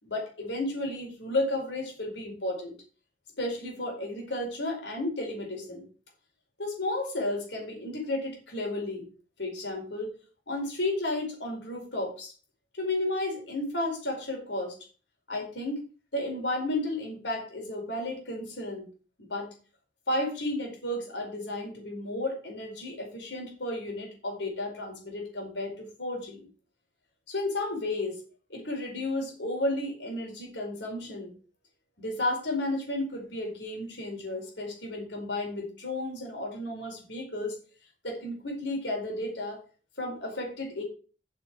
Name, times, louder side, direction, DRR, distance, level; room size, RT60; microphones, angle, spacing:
voice 1, 0.0-2.8 3.4-5.9 6.6-9.1 9.4-10.2 10.5-12.3 12.8-14.7 15.3-15.8 16.1-18.9 19.2-19.5 20.1-26.5 27.3-28.2 28.5-31.3 32.0-37.6 38.0-39.6 40.0-40.8, left 1 dB, 80° left, 1 dB, 4.6 m, -33 dB
8.2 x 6.8 x 6.2 m, 0.37 s
head